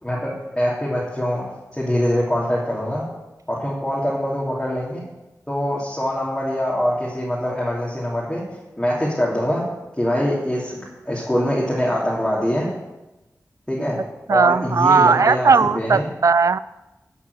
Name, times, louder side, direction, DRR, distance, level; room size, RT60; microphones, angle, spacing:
voice 1, 0.0-1.4 1.7-3.0 3.5-5.0 5.5-8.4 8.8-9.6 10.0-12.7 13.7-14.0 14.3-16.1, equal, 10° left, -7 dB, 2.8 m, -23 dB
voice 2, 14.3-16.6, right 5 dB, 65° right, 17 dB, 0.4 m, -17 dB
11.5 x 6.0 x 6.5 m, 1.0 s
wide cardioid pair, 60°, 6 cm